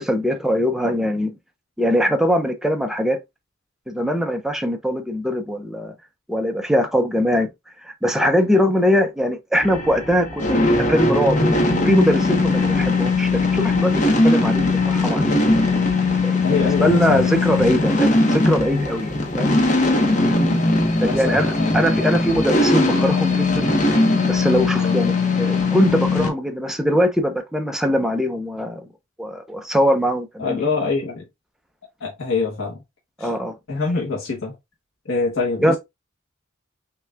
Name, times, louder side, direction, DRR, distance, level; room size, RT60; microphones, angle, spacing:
voice 1, 0.0-1.3 1.8-3.2 3.9-5.9 6.3-7.5 7.8-15.6 16.2-19.5 21.0-23.7 24.3-28.8 29.2-30.7 33.2-33.5 35.6-35.8, equal, ahead, 0.5 m, -21 dB
sound 1, 9.6-26.3, left 2 dB, 40° left, 0.9 m, -19 dB
voice 2, 16.4-17.7 20.2-20.7 21.0-22.0 24.8-25.0 30.4-31.2 32.0-32.8 33.2-33.3 33.7-34.5 35.1-35.8, left 4 dB, 85° left, 1.0 m, -25 dB
5.7 x 2.3 x 2.2 m
head